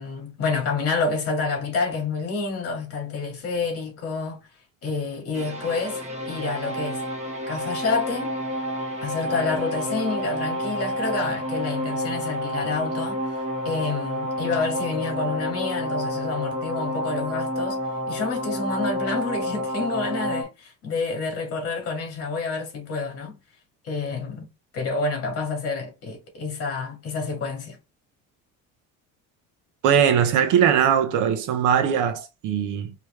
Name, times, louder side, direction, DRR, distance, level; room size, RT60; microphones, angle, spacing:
voice 1, 0.0-4.4 4.8-7.0 7.5-8.4 9.0-13.4 13.6-17.8 18.1-23.4 23.8-24.5 24.7-27.8, left 4 dB, 45° left, 2.3 m, -28 dB
sound 1, 5.3-20.4, equal, 20° right, 1.2 m, -29 dB
voice 2, 29.8-32.9, right 8 dB, 60° right, 1.0 m, -20 dB
4.9 x 3.1 x 3.2 m
cardioid pair, 165°, 34 cm